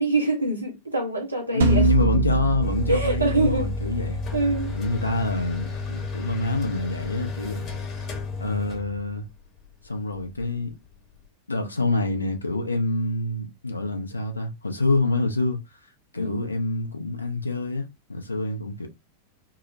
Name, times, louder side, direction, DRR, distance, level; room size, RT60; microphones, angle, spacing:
voice 1, 0.0-2.2 2.9-3.7 4.3-4.7 16.1-16.4, right 2 dB, 85° right, 0.9 m, -25 dB
voice 2, 1.5-4.2 4.7-7.7 8.4-9.2 9.8-10.7 11.5-15.6 16.1-18.9, left 2 dB, 80° left, 0.5 m, -26 dB
sound 1, 1.6-6.7, right 7 dB, 65° right, 0.4 m, -28 dB
sound 2, 2.6-11.3, left 4 dB, 35° left, 0.8 m, -33 dB
2.7 x 2.1 x 2.6 m
figure-of-eight pair, 90°, 0 cm